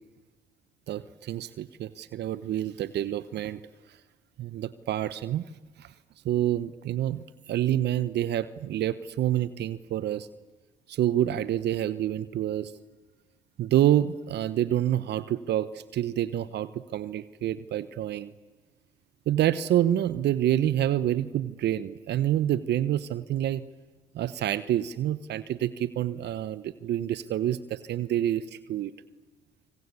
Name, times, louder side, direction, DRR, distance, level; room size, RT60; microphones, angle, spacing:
voice 1, 0.9-3.6 4.4-5.4 5.8-5.9 6.2-7.2 7.5-10.3 10.9-12.7 13.6-18.3 19.3-23.6 24.1-28.9, right 12 dB, 65° right, 15 dB, 1.0 m, -27 dB
26.0 x 25.5 x 8.3 m, 1.2 s
hypercardioid pair, 55°, 19 cm